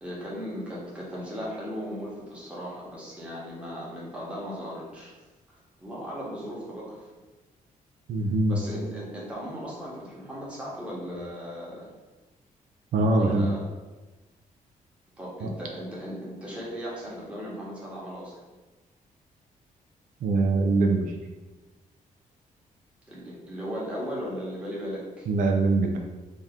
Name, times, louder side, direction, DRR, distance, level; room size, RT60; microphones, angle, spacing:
voice 1, 0.0-5.1 5.5-7.1 8.5-11.9 13.1-13.6 15.2-18.4 23.1-25.3, equal, 10° right, -6 dB, 1.2 m, -37 dB
voice 2, 8.1-8.6 12.9-13.5 15.4-15.5 20.2-21.2 25.3-26.0, right 3 dB, 70° right, 2 dB, 0.4 m, -23 dB
3.6 x 2.7 x 3.6 m, 1.2 s
cardioid pair, 145°, 14 cm